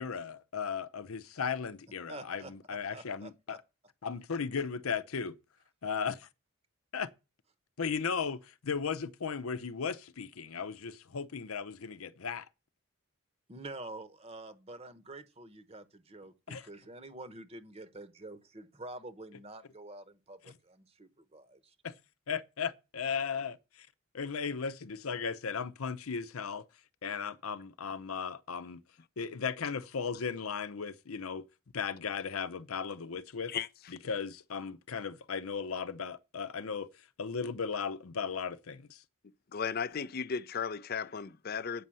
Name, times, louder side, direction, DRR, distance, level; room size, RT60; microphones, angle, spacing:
voice 1, 0.0-3.6 4.0-5.4 5.8-6.3 6.9-7.1 7.8-12.5 16.5-16.6 20.4-20.5 21.8-21.9 22.3-23.9 24.1-26.7 27.0-28.8 29.2-31.4 31.7-33.5 34.1-36.9 37.2-39.0, left 6 dB, 90° left, 0.7 m, -36 dB
voice 2, 2.1-3.6 13.5-21.7, right 2 dB, 30° right, 0.9 m, -47 dB
voice 3, 39.5-41.8, left 6 dB, 45° left, 0.5 m, -35 dB
8.5 x 5.5 x 7.5 m
head